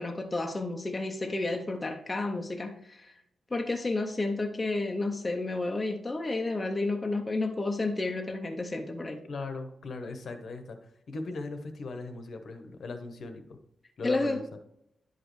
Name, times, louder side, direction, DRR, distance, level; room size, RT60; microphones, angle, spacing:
voice 1, 0.0-3.1 3.5-9.2 14.0-14.4, left 2 dB, 15° left, 2 dB, 0.6 m, -31 dB
voice 2, 9.2-13.6 14.0-14.4, left 3 dB, 55° left, 6 dB, 0.9 m, -39 dB
11.0 x 5.1 x 3.1 m, 0.76 s
wide cardioid pair, 160°, 0 cm